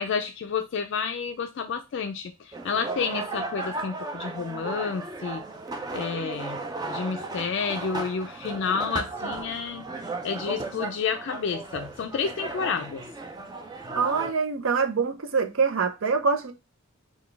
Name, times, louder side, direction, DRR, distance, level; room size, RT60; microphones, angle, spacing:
voice 1, 0.0-5.4 5.9-6.6 6.9-9.8 10.2-13.0, left 6 dB, 55° left, 0.3 m, -30 dB
sound 1, 2.5-14.3, right 3 dB, 20° right, 0.4 m, -35 dB
voice 2, 13.9-16.5, right 5 dB, 70° right, 0.5 m, -25 dB
3.9 x 2.3 x 3.3 m
head